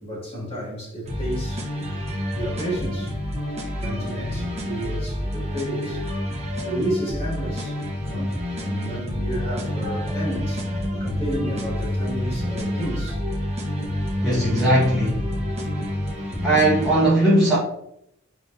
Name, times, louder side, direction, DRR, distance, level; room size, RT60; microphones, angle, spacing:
voice 1, 0.0-1.7 2.4-3.1 3.8-6.0 6.6-7.8 8.1-10.6 11.0-13.2, equal, 30° left, 1.8 m, -31 dB
sound 1, 1.1-17.1, equal, 30° right, 1.0 m, -28 dB
voice 2, 14.2-15.3 16.4-17.6, right 1 dB, ahead, 1.2 m, -19 dB
5.9 x 3.4 x 2.6 m
head